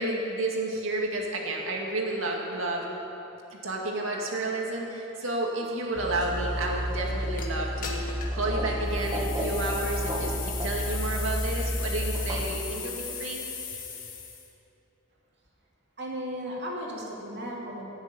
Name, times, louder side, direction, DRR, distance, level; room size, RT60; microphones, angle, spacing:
voice 1, 0.0-2.9 3.5-13.4, right 2 dB, 80° right, -1 dB, 2.2 m, -31 dB
sound 1, 5.9-12.5, equal, 20° right, 1.5 m, -31 dB
sound 2, 7.4-7.5 7.8-8.4 8.9-14.5, left 6 dB, 45° left, 1.7 m, -38 dB
voice 2, 16.0-17.8, equal, 55° right, -3 dB, 2.8 m, -35 dB
16.5 x 7.2 x 9.0 m, 3.0 s
head